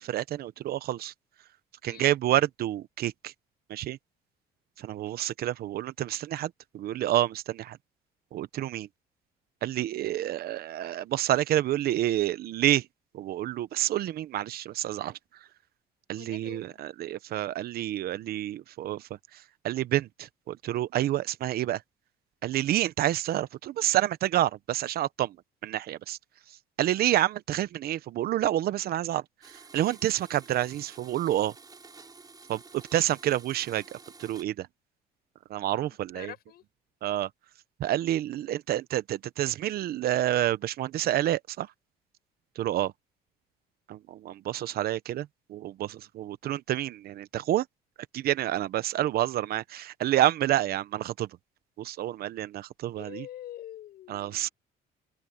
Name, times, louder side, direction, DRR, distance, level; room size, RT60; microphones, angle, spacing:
voice 1, 0.0-1.1 1.8-3.3 3.7-4.0 4.8-7.8 8.3-8.9 9.6-12.8 13.1-15.1 16.1-19.0 19.6-21.8 22.4-25.4 25.6-26.2 26.8-29.2 29.7-31.5 32.5-34.7 35.5-36.3 37.0-37.3 37.8-41.7 42.6-42.9 43.9-47.6 48.1-51.3 51.8-53.2 54.1-54.5, right 13 dB, 65° right, 1.0 m, -28 dB
voice 2, 16.2-16.8 35.9-36.6 52.9-54.5, left 12 dB, 65° left, 6.3 m, -45 dB
Domestic sounds home sounds, 29.4-34.4, right 4 dB, 25° right, 4.5 m, -51 dB
open air
cardioid pair, 110°, 17 cm